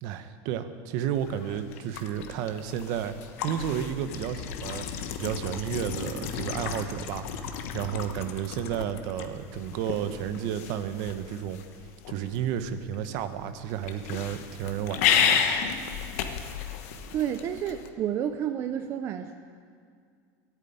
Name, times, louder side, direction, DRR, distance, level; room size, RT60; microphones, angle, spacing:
voice 1, 0.0-3.2 3.4-11.6 12.1-15.4, right 9 dB, 60° right, 10 dB, 0.9 m, -32 dB
sound 1, 1.1-17.9, left 8 dB, 90° left, 1.1 m, -33 dB
voice 2, 17.1-19.4, right 9 dB, 35° right, 7 dB, 0.5 m, -30 dB
13.0 x 8.3 x 9.9 m, 2.1 s
cardioid pair, 165°, 8 cm